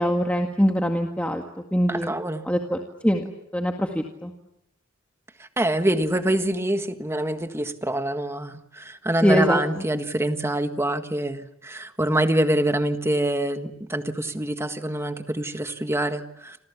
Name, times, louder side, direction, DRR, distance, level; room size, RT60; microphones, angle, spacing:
voice 1, 0.0-1.4 1.7-2.1 2.5-2.8 3.0-3.2 3.5-4.3 9.2-9.6, equal, 5° left, 2 dB, 1.9 m, -22 dB
voice 2, 1.9-2.5 5.6-16.6, right 1 dB, 10° right, 8 dB, 1.6 m, -25 dB
29.0 x 27.5 x 7.2 m, 0.79 s
head